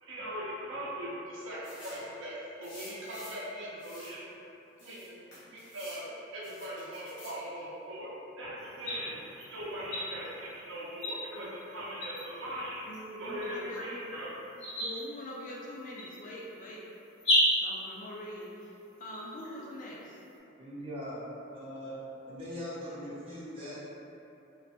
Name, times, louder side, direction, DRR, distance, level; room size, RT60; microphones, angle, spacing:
voice 1, 0.0-4.2 4.8-5.2 5.5-6.0 6.3-12.9 13.2-14.3 19.0-19.3, equal, 70° right, -7 dB, 0.6 m, -40 dB
sound 1, 1.6-2.1 2.6-3.5 3.8-4.2 4.8-6.0 6.4-7.4, left 1 dB, 55° left, 1.0 m, -50 dB
sound 2, 8.6-20.4, equal, 90° left, 1.2 m, -36 dB
voice 2, 12.8-14.1 14.8-16.9 17.6-20.2, left 1 dB, 40° left, -3 dB, 0.3 m, -43 dB
voice 3, 20.6-21.2 21.5-22.0 22.3-23.8, equal, 30° right, -12 dB, 0.9 m, -40 dB
3.0 x 2.1 x 2.8 m, 2.9 s
head